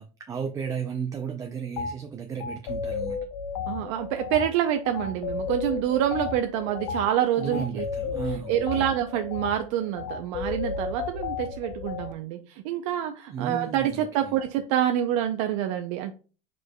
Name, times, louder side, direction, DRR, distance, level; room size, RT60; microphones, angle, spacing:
voice 1, 0.0-3.2 7.4-8.9 13.3-14.3, right 7 dB, 20° right, 0.4 m, -34 dB
sound 1, 1.8-1.9 2.4-12.1, left 6 dB, 90° left, 0.6 m, -33 dB
voice 2, 3.7-7.8 8.5-16.1, right 11 dB, 75° right, 0.5 m, -27 dB
4.8 x 4.6 x 2.2 m
supercardioid pair, 140°, 16 cm